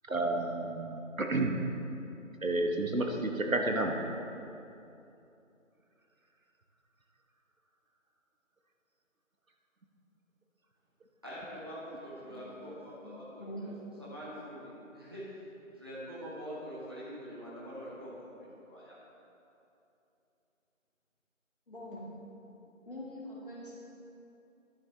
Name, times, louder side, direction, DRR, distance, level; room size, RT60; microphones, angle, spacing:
voice 1, 0.1-1.5 2.4-3.9, right 2 dB, 80° right, 3 dB, 1.3 m, -30 dB
voice 2, 11.2-13.7 14.0-15.3 15.7-18.9, equal, 20° right, -8 dB, 1.5 m, -44 dB
voice 3, 12.2-12.6 13.0-13.7 21.7-22.1 22.9-23.8, equal, 40° left, -6 dB, 2.2 m, -44 dB
11.0 x 9.8 x 3.4 m, 2.8 s
figure-of-eight pair, 170°, 40 cm